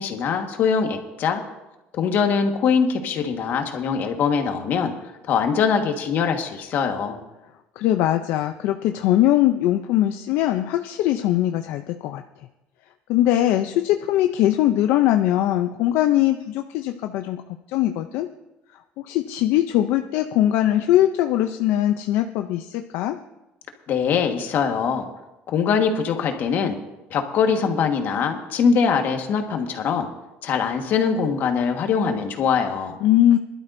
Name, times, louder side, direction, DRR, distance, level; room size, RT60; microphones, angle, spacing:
voice 1, 0.0-1.4 2.0-4.9 5.3-7.2 23.9-25.1 25.5-26.8 27.1-30.1 30.4-33.0, left 6 dB, 55° left, 5 dB, 1.5 m, -22 dB
voice 2, 7.8-12.2 13.1-17.4 17.7-18.3 19.0-23.2 33.0-33.4, left 13 dB, 80° left, 7 dB, 0.5 m, -21 dB
21.0 x 12.0 x 2.6 m, 1.0 s
cardioid pair, 125°, 4 cm